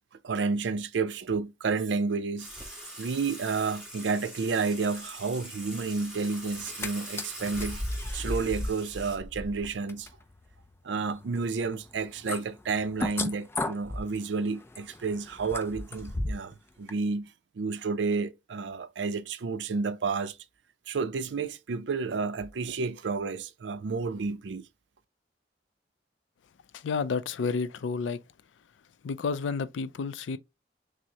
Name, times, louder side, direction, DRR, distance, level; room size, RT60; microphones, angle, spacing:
voice 1, 0.2-2.5 3.0-7.8 8.1-10.1 10.8-17.3 17.6-20.4 20.9-24.6, right 4 dB, 70° right, 0.4 m, -31 dB
Water / Water tap faucet / Sink (filling or washing), 2.4-9.1, right 1 dB, 5° right, 1.5 m, -43 dB
sound 1, 6.5-6.9 7.2-16.5 16.9-17.0, left 1 dB, 15° left, 0.4 m, -36 dB
voice 2, 26.7-28.2 29.0-30.4, left 5 dB, 85° left, 0.4 m, -30 dB
6.1 x 2.0 x 2.7 m
head